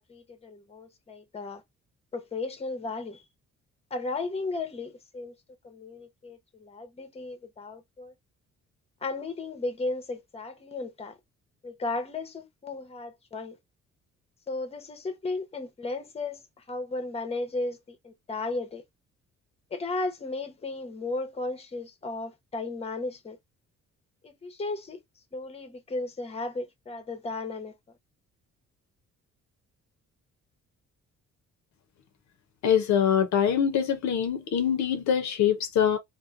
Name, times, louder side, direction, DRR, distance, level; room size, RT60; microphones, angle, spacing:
voice 1, 0.0-1.6 2.1-3.2 3.9-5.3 5.6-8.1 9.0-11.2 11.6-13.6 14.5-16.4 16.7-18.8 19.7-23.4 24.2-25.0 25.3-27.7, left 3 dB, 20° left, 0.7 m, -35 dB
voice 2, 32.6-36.0, left 8 dB, 65° left, 0.6 m, -24 dB
2.8 x 2.1 x 2.4 m
cardioid pair, 90°, 30 cm